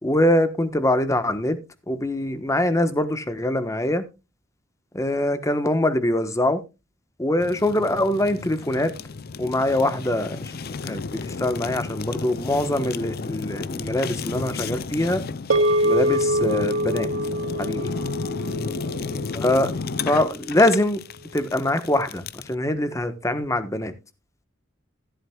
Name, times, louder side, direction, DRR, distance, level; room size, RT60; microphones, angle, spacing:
voice 1, 0.0-1.6 1.9-4.0 4.9-6.6 7.2-8.9 9.4-10.4 10.8-15.2 15.8-17.1 17.6-17.9 19.3-19.7 20.1-21.0 21.3-23.9, left 1 dB, 15° left, 1.1 m, -23 dB
Fire, 7.4-22.5, left 4 dB, 50° left, 0.5 m, -33 dB
sound 1, 15.5-20.0, equal, 80° right, 2.5 m, -24 dB
14.0 x 11.5 x 2.3 m
head